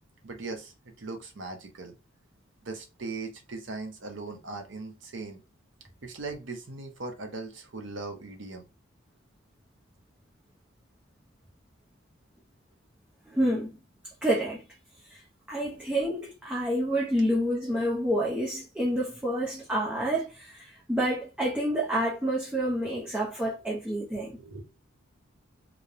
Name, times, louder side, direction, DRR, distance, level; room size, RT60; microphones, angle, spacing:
voice 1, 0.2-1.9 2.6-5.4 6.0-8.6 24.3-24.6, right 3 dB, 65° right, 0.7 m, -39 dB
voice 2, 13.3-13.8 14.2-14.6 15.1-15.2 15.5-24.4, right 1 dB, 5° right, 0.5 m, -28 dB
3.0 x 2.1 x 2.4 m
head